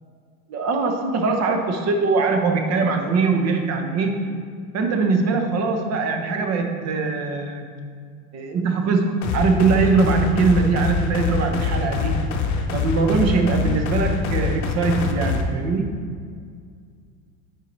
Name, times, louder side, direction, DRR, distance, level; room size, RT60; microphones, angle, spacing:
voice 1, 0.5-4.3 4.7-7.7 8.3-12.2 12.7-15.9, right 4 dB, 35° right, 4 dB, 0.9 m, -21 dB
sound 1, 9.2-15.4, left 4 dB, 40° left, 0.8 m, -24 dB
4.6 x 4.6 x 5.3 m, 2.1 s
supercardioid pair, 105°, 43 cm